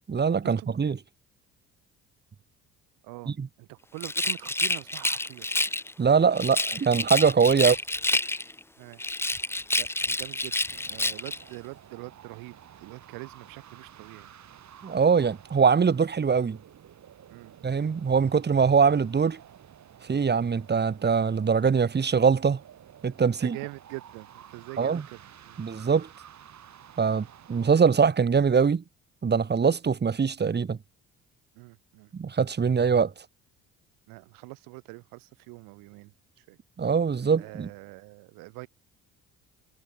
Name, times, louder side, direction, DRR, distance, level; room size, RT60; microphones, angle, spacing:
voice 1, 0.1-0.9 3.4-3.5 6.0-7.8 14.8-16.6 17.6-19.4 20.1-22.6 23.0-23.6 24.8-25.0 25.6-26.1 27.0-28.8 29.2-30.8 32.1-33.1 36.8-37.7, right 6 dB, 30° right, 1.7 m, -22 dB
voice 2, 3.0-5.6 7.6-7.8 8.8-9.0 9.7-10.6 10.9-14.3 17.3-17.5 23.4-25.6 27.1-27.3 31.5-32.1 34.1-36.6 37.4-38.7, right 25 dB, 85° right, 3.4 m, -44 dB
Rattle, 4.0-5.9 6.4-8.6 9.0-11.4, left 2 dB, 5° left, 0.9 m, -28 dB
sound 1, 10.7-27.7, right 9 dB, 55° right, 7.2 m, -51 dB
supercardioid pair, 70°, 33 cm